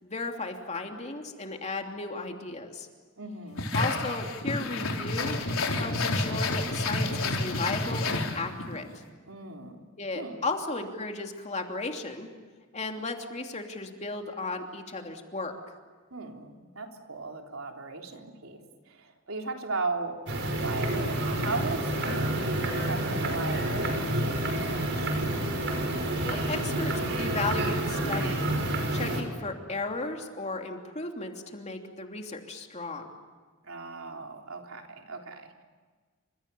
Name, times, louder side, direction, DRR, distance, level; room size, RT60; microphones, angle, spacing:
voice 1, 0.0-2.9 3.7-5.3 5.8-9.0 10.0-12.3 12.7-15.5 26.2-26.9 27.2-28.4 28.9-33.1, left 3 dB, 35° left, 3 dB, 3.0 m, -35 dB
voice 2, 3.2-3.7 9.3-9.9 10.1-10.4 16.1-18.6 18.9-25.1 33.6-35.6, right 3 dB, 80° right, 2 dB, 3.7 m, -37 dB
sound 1, 3.6-8.8, left 2 dB, 80° left, 4.3 m, -29 dB
sound 2, 20.3-29.2, right 1 dB, 60° right, 5.8 m, -29 dB
29.5 x 26.5 x 7.0 m, 1.5 s
head